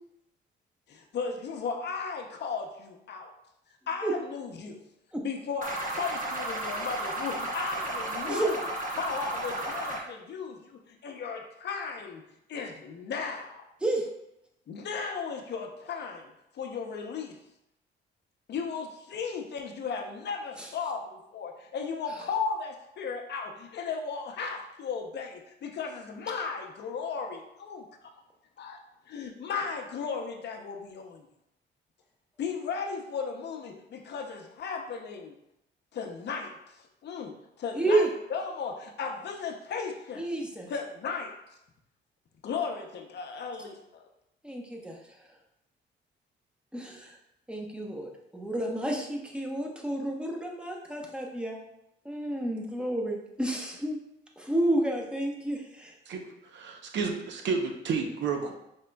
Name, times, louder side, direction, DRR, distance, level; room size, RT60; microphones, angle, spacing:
voice 1, 0.9-3.3 3.9-4.8 5.2-8.7 8.9-12.2 12.5-13.6 14.7-16.3 16.5-17.4 18.5-28.1 28.6-28.8 29.1-31.2 32.4-35.4 35.9-36.6 37.0-40.3 40.7-41.3 42.4-44.1, left 5 dB, 60° left, 3 dB, 0.7 m, -35 dB
sound 1, 5.6-10.0, right 1 dB, 40° right, 0.9 m, -33 dB
voice 2, 37.7-38.1 40.2-40.7 44.4-45.0 46.7-47.2 47.5-51.6 52.0-54.0 54.4-55.9, right 1 dB, 5° right, 0 dB, 0.8 m, -30 dB
voice 3, 56.1-58.6, right 5 dB, 65° right, 3 dB, 0.7 m, -31 dB
5.2 x 3.6 x 2.2 m, 0.82 s
cardioid pair, 90°, 20 cm